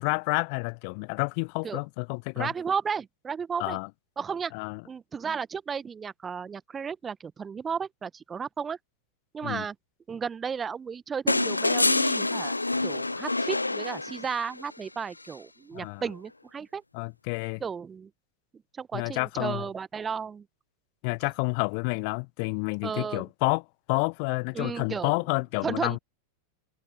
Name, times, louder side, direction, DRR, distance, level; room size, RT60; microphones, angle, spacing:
voice 1, 0.0-2.5 3.6-3.9 4.5-4.8 9.4-9.6 15.7-16.0 16.9-17.6 18.9-19.6 21.0-23.6 23.9-26.0, left 38 dB, 45° left, 1.0 m, -29 dB
voice 2, 2.4-3.8 4.2-4.5 4.9-8.8 9.3-9.7 10.1-12.5 12.8-16.8 17.6-18.1 18.8-20.4 22.8-23.3 24.5-25.1 25.6-26.0, right 6 dB, 20° right, 1.1 m, -33 dB
sound 1, 11.3-14.6 16.1-16.2, left 2 dB, 85° left, 0.6 m, -26 dB
figure-of-eight pair, 90°, 0 cm